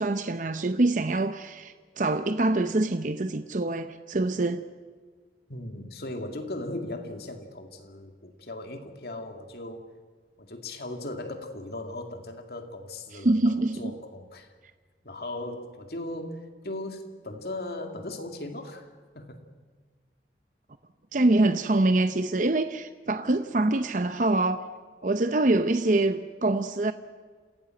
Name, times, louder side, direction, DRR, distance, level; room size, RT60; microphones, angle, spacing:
voice 1, 0.0-4.6 13.2-13.8 21.1-24.6 25.0-26.9, right 2 dB, 45° right, 0.7 m, -25 dB
voice 2, 5.5-9.9 10.4-14.5 15.0-18.9 19.1-19.4, left 1 dB, 60° left, 2.3 m, -38 dB
28.0 x 16.0 x 7.7 m
head